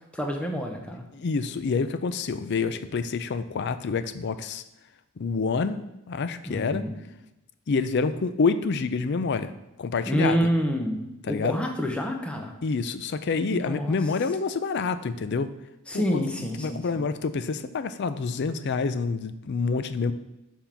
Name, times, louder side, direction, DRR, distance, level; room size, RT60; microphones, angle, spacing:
voice 1, 0.1-1.1 6.5-6.9 10.0-12.5 13.4-14.0 15.9-17.0, equal, 5° left, 2 dB, 0.7 m, -28 dB
voice 2, 1.1-4.6 5.2-5.8 6.1-6.8 7.7-9.5 9.8-10.5 11.2-11.6 12.6-15.5 15.9-16.2 16.6-20.1, left 4 dB, 50° left, 12 dB, 0.4 m, -27 dB
6.9 x 3.7 x 5.7 m, 0.92 s
head